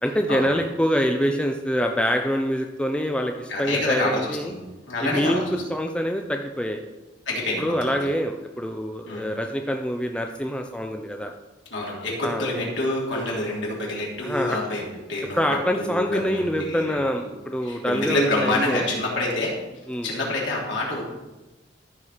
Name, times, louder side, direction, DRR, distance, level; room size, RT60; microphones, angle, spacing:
voice 1, 0.0-4.5 5.0-6.8 7.6-11.3 12.2-12.7 13.1-13.5 14.2-14.6 15.3-18.9 19.9-20.1, equal, 5° left, 3 dB, 0.6 m, -25 dB
voice 2, 3.5-5.5 7.3-8.0 9.1-9.2 11.7-14.8 15.1-15.4 15.7-17.3 17.6-19.5 20.0-21.0, left 2 dB, 90° left, -3 dB, 3.2 m, -27 dB
14.5 x 4.8 x 5.7 m, 1.1 s
head